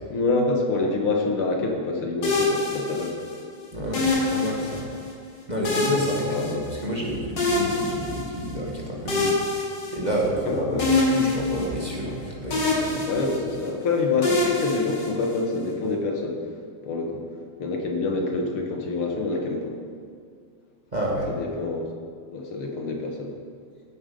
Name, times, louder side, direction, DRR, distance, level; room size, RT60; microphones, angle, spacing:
voice 1, 0.1-3.2 5.9-6.6 10.3-11.0 13.1-16.4 16.8-17.3 17.6-19.7 21.3-21.9 22.3-23.3, left 3 dB, 75° left, 1 dB, 2.5 m, -26 dB
sound 1, 2.2-3.4 3.9-5.1 5.6-7.0 7.4-8.6 9.1-10.4 10.8-12.2 12.5-13.7 14.2-15.6, left 3 dB, 55° left, 3.0 m, -25 dB
voice 2, 3.7-4.9 5.5-9.3 9.9-10.8 11.1-13.1 20.9-21.3, right 1 dB, 20° right, -3 dB, 1.7 m, -29 dB
16.0 x 8.8 x 5.4 m, 2.1 s
omnidirectional pair, 2.3 m